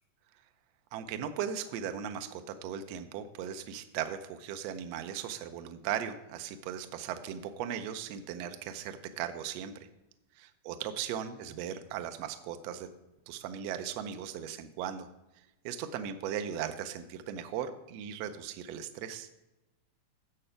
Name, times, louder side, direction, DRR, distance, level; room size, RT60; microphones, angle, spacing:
voice 1, 0.9-9.7 10.3-12.9 13.3-15.1 15.6-19.3, right 9 dB, 80° right, 8 dB, 1.5 m, -38 dB
8.6 x 6.8 x 5.0 m, 0.99 s
omnidirectional pair, 3.6 m